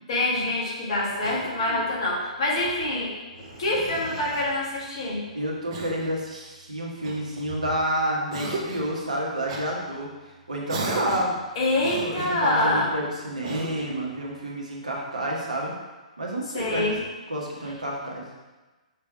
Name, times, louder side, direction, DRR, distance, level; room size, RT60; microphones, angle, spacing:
voice 1, 0.1-3.1 3.6-5.2 11.5-12.9 16.5-17.0, left 1 dB, 45° left, -4 dB, 1.7 m, -25 dB
Cough, 1.2-2.0 3.3-4.5 5.7-6.2 7.0-7.9 8.3-8.9 9.5-9.7 10.7-11.4 11.8-12.6 13.4-14.0, right 2 dB, 45° right, 0.9 m, -35 dB
voice 2, 5.3-10.1 10.5-11.4 12.0-15.7 16.2-16.9 17.3-18.3, right 1 dB, 75° right, -3 dB, 1.5 m, -29 dB
5.9 x 3.4 x 4.7 m, 1.2 s
figure-of-eight pair, 120°, 4 cm